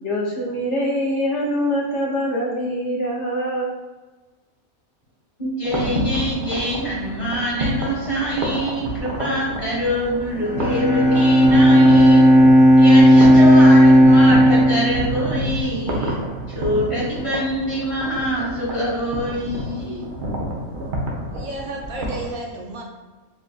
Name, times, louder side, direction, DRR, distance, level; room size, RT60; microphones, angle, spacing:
voice 1, 0.0-3.7, equal, 60° left, -3 dB, 0.9 m, -24 dB
voice 2, 5.4-12.3 12.8-20.1, equal, 20° left, -6 dB, 1.3 m, -25 dB
sound 1, 5.6-22.3, equal, 45° right, 0.7 m, -29 dB
Bowed string instrument, 10.4-15.8, equal, 5° right, 0.6 m, -12 dB
voice 3, 21.3-22.8, right 2 dB, 70° right, 1 dB, 1.0 m, -32 dB
6.5 x 2.5 x 2.3 m, 1.2 s
omnidirectional pair, 1.5 m